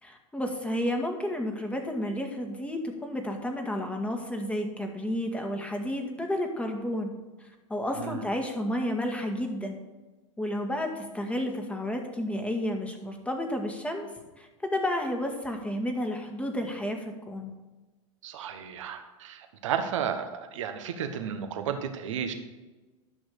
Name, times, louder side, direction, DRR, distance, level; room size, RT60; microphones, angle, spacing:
voice 1, 0.0-7.1 7.4-9.8 10.4-14.1 14.4-17.5, left 1 dB, 10° left, 3 dB, 1.9 m, -31 dB
voice 2, 7.9-8.3 18.2-22.3, right 8 dB, 70° right, 7 dB, 1.4 m, -33 dB
11.5 x 6.2 x 6.6 m, 1.2 s
hypercardioid pair, 95°, 16 cm